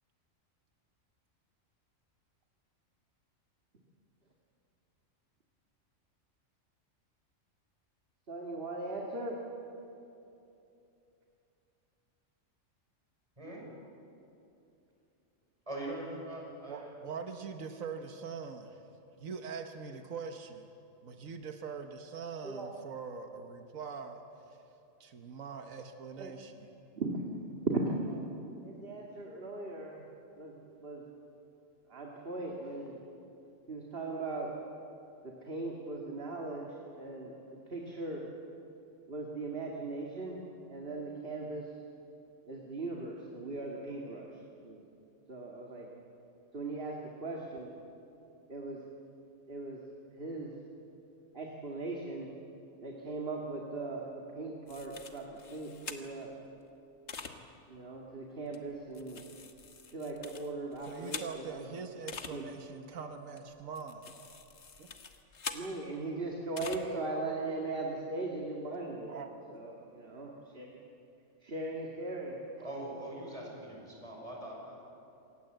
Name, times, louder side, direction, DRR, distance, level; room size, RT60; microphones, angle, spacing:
voice 1, 8.3-9.4 22.4-22.7 26.2-26.3 26.9-28.3 28.6-30.0 30.4-31.0 31.9-33.0 33.7-34.5 35.2-36.7 37.0-38.2 39.1-40.4 40.7-41.7 42.5-44.8 45.3-45.9 46.5-47.7 48.5-48.8 49.5-49.8 50.2-50.5 51.3-52.3 52.8-55.3 55.5-56.3 57.7-59.2 59.9-61.6 62.3-62.8 65.5-69.2 69.5-70.7 71.4-72.4, right 2 dB, 45° right, -1 dB, 2.4 m, -39 dB
voice 2, 15.7-17.0 72.6-74.7, right 1 dB, 25° right, -2 dB, 6.1 m, -42 dB
voice 3, 16.7-18.8 19.2-20.7 21.0-24.2 25.0-26.7 60.9-64.2 64.8-64.9 69.1-69.6, right 5 dB, 90° right, 6 dB, 1.5 m, -43 dB
sound 1, 54.7-56.3 57.1-57.3 58.5-61.6 62.1-62.3 63.4-65.7 66.6-66.8, left 5 dB, 60° left, 1.6 m, -45 dB
27.0 x 18.0 x 7.9 m, 2.8 s
omnidirectional pair, 1.3 m